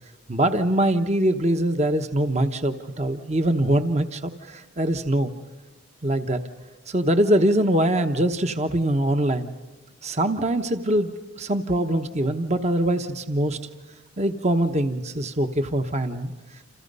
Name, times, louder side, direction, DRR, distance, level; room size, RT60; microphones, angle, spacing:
voice 1, 0.3-5.3 6.0-6.4 6.9-9.5 10.0-11.1 11.4-13.6 14.2-16.3, right 1 dB, 35° right, 8 dB, 1.0 m, -23 dB
29.0 x 28.0 x 5.5 m, 1.2 s
head